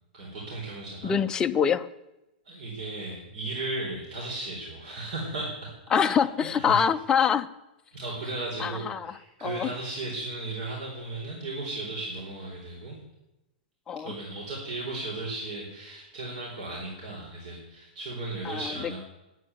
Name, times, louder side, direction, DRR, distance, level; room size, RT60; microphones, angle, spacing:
voice 1, 0.1-1.2 2.4-5.7 6.0-6.3 6.5-6.8 7.9-13.0 14.0-19.0, right 2 dB, 50° right, -3 dB, 4.3 m, -36 dB
voice 2, 1.0-1.9 5.9-7.5 8.6-9.1 9.4-9.7 13.9-14.1 18.4-18.6, left 7 dB, 15° left, 8 dB, 0.5 m, -24 dB
10.5 x 9.3 x 9.3 m, 0.97 s
hypercardioid pair, 160°, 5 cm